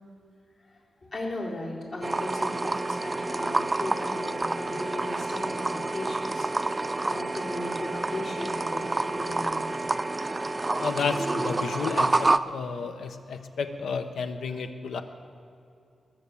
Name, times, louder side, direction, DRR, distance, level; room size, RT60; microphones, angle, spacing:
voice 1, 0.7-9.8 10.6-10.7, left 1 dB, 50° left, -4 dB, 3.8 m, -37 dB
sound 1, 2.0-12.4, right 2 dB, 20° right, 0.4 m, -28 dB
voice 2, 10.8-15.0, left 5 dB, 85° left, 8 dB, 1.0 m, -31 dB
21.0 x 7.6 x 7.1 m, 2.5 s
wide cardioid pair, 115°, 0 cm